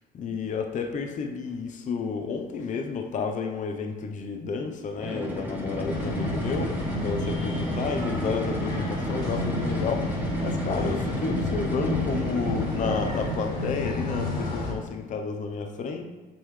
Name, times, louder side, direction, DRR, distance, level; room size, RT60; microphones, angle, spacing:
voice 1, 0.1-6.7 7.0-10.1 10.4-16.0, left 5 dB, 50° left, 4 dB, 0.8 m, -31 dB
sound 1, 4.9-13.7, right 1 dB, 10° right, 1.2 m, -33 dB
sound 2, 5.9-14.7, left 2 dB, 65° left, 1.8 m, -31 dB
7.9 x 4.0 x 3.2 m, 1.3 s
cardioid pair, 110°, 17 cm